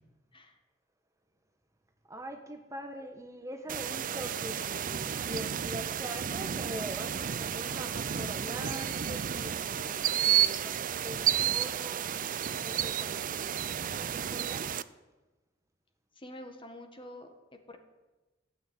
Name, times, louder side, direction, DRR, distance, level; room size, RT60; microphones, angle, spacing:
voice 1, 2.0-12.1 12.6-14.7, equal, 15° right, 5 dB, 1.2 m, -43 dB
sound 1, 3.7-14.8, right 9 dB, 45° right, 0.5 m, -32 dB
voice 2, 16.1-17.8, left 1 dB, 25° left, 6 dB, 1.7 m, -47 dB
15.5 x 9.1 x 9.1 m, 1.1 s
head